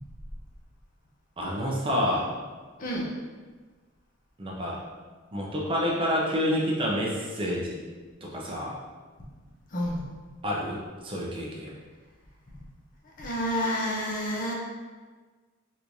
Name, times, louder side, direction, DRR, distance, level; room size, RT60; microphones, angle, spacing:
voice 1, 1.4-2.3 4.4-4.8 5.3-7.8 8.2-8.8 10.4-11.8, equal, 25° right, -3 dB, 0.4 m, -28 dB
voice 2, 2.8-3.1 9.7-10.0 13.2-14.5, equal, 40° left, -2 dB, 0.5 m, -29 dB
3.4 x 3.0 x 2.6 m, 1.4 s
head